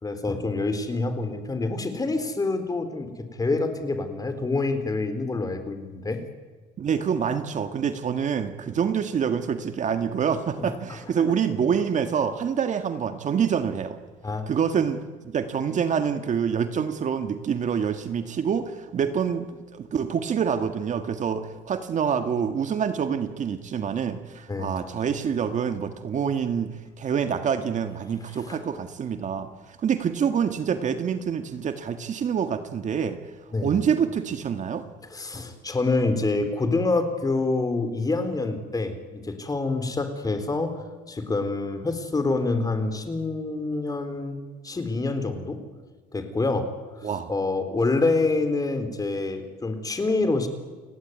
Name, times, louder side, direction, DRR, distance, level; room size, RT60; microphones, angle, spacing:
voice 1, 0.0-3.1 3.4-6.2 10.6-10.7 14.2-14.5 24.5-24.7 28.5-28.6 33.5-33.7 35.1-40.8 41.1-44.4 44.6-45.6 46.1-46.7 47.0-50.5, left 3 dB, 20° left, 9 dB, 4.0 m, -26 dB
voice 2, 6.8-14.0 14.5-19.4 19.7-26.7 27.0-29.5 29.8-33.2 33.6-34.8 47.0-47.3, right 7 dB, 45° right, 8 dB, 1.8 m, -26 dB
30.0 x 18.0 x 9.6 m, 1.4 s
cardioid pair, 110°, 17 cm